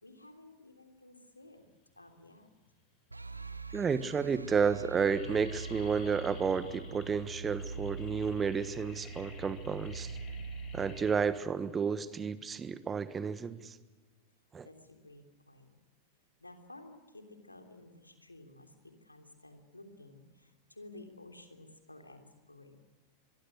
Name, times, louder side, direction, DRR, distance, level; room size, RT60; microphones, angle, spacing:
voice 1, 0.0-1.7 1.9-2.5 14.6-15.8 16.4-22.7, left 2 dB, 85° left, 5 dB, 3.4 m, -54 dB
sound 1, 2.4-3.0 3.7-3.8 4.0-4.4 4.7-13.6, left 5 dB, 35° left, 7.2 m, -52 dB
sound 2, 3.1-12.2, right 4 dB, 85° right, 1.1 m, -43 dB
voice 2, 3.7-10.1 10.7-13.8 14.5-14.7, right 6 dB, 20° right, 14 dB, 1.3 m, -31 dB
24.5 x 23.5 x 6.5 m, 1.3 s
figure-of-eight pair, 90°, 0 cm